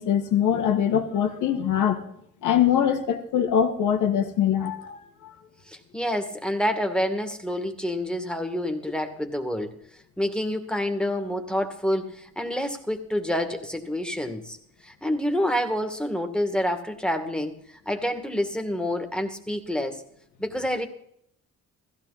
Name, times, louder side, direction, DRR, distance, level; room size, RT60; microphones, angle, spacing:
voice 1, 0.0-2.0 2.4-5.3, left 9 dB, 85° left, 5 dB, 2.3 m, -23 dB
voice 2, 5.7-9.7 10.2-14.6 14.8-17.5 17.9-20.0 20.4-20.9, equal, 5° left, 5 dB, 2.3 m, -28 dB
16.5 x 15.0 x 4.3 m, 0.71 s
cardioid pair, 90°, 30 cm